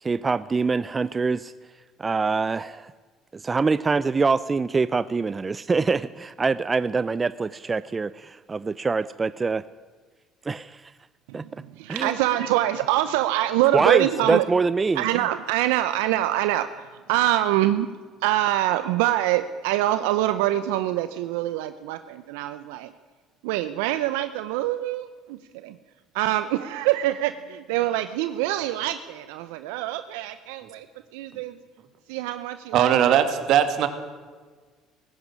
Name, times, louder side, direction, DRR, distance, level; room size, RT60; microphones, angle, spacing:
voice 1, 0.0-1.5 2.0-2.9 3.3-9.6 10.4-10.9 11.3-11.6 11.9-12.2 13.7-15.2, right 4 dB, 25° right, 16 dB, 0.6 m, -24 dB
voice 2, 11.8-14.4 15.0-17.9 18.2-22.9 23.4-25.8 26.1-30.8 31.1-31.6 32.1-33.2, right 14 dB, 85° right, 11 dB, 0.7 m, -25 dB
voice 3, 32.7-33.9, right 10 dB, 65° right, 9 dB, 2.4 m, -19 dB
18.0 x 15.0 x 9.9 m, 1.5 s
supercardioid pair, 80°, 0 cm